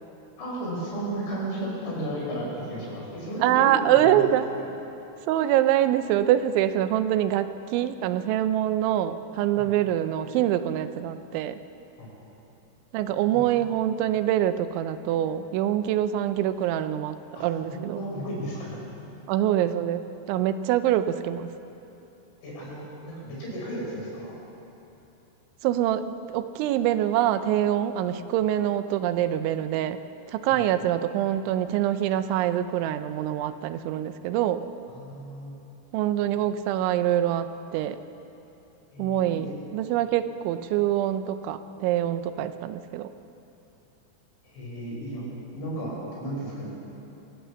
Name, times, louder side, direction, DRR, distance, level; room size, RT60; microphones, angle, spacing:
voice 1, 0.4-4.3 4.5-4.6 9.6-9.7 12.0-12.1 13.3-13.4 17.4-17.5 17.7-18.8 22.4-24.4 30.5-30.6 34.9-35.6 38.9-39.5 44.4-45.2 45.5-46.7, right 1 dB, 90° left, -4 dB, 7.9 m, -34 dB
voice 2, 3.4-4.5 5.3-11.6 12.9-18.0 19.3-21.5 25.6-30.0 30.3-34.6 35.9-38.0 39.0-43.1, right 11 dB, 90° right, 11 dB, 3.2 m, -25 dB
23.5 x 16.0 x 7.2 m, 3.0 s
omnidirectional pair, 5.3 m